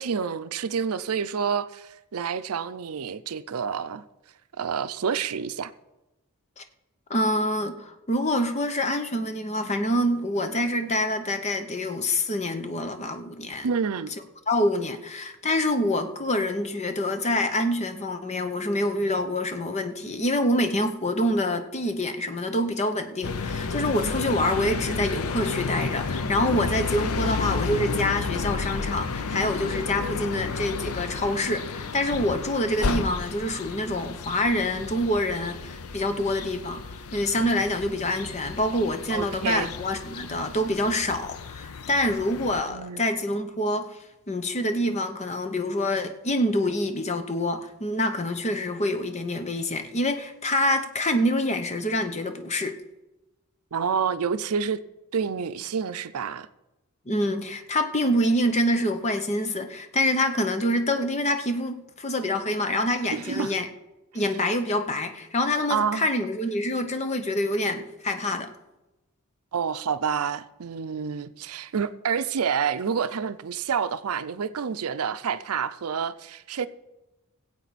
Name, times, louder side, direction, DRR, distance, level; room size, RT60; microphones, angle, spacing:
voice 1, 0.0-4.0 4.6-5.7 13.6-14.1 39.1-39.7 42.7-43.1 53.7-54.8 55.1-56.5 63.1-63.5 65.7-66.1 69.5-76.7, right 6 dB, 80° right, 0.5 m, -28 dB
voice 2, 7.1-13.7 14.5-44.0 44.3-52.8 57.1-63.7 64.1-68.5, left 1 dB, 30° left, 0.8 m, -26 dB
sound 1, 23.2-42.6, left 4 dB, 75° left, 0.6 m, -32 dB
19.5 x 8.2 x 4.1 m
head